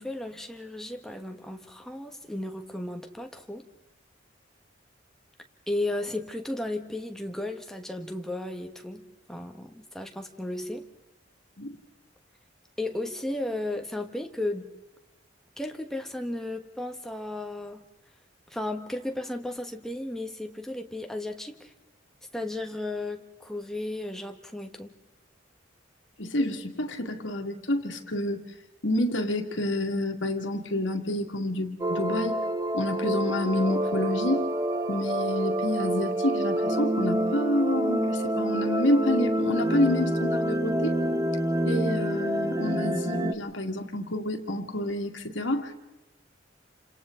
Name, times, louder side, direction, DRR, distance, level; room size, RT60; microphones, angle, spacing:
voice 1, 0.0-3.7 5.7-10.9 12.8-14.7 15.6-17.8 18.5-21.7 22.3-24.9, left 1 dB, ahead, 4 dB, 1.4 m, -34 dB
voice 2, 26.2-28.4 28.8-32.4 32.7-34.5 34.9-40.9 41.7-45.7, left 1 dB, 75° left, 4 dB, 2.2 m, -28 dB
sound 1, 31.8-43.3, right 1 dB, 20° right, 0.7 m, -27 dB
29.0 x 26.5 x 3.9 m, 1.0 s
head